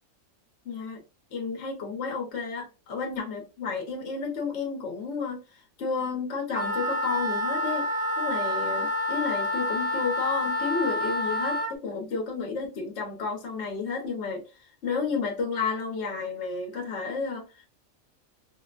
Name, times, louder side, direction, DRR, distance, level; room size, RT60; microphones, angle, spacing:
voice 1, 0.6-1.0 1.3-7.9 8.2-14.4 14.8-17.4, left 5 dB, 55° left, 1.1 m, -31 dB
Wind instrument woodwind instrument, 6.5-11.7, left 1 dB, 55° right, 0.9 m, -28 dB
3.7 x 2.2 x 2.4 m
omnidirectional pair, 1.5 m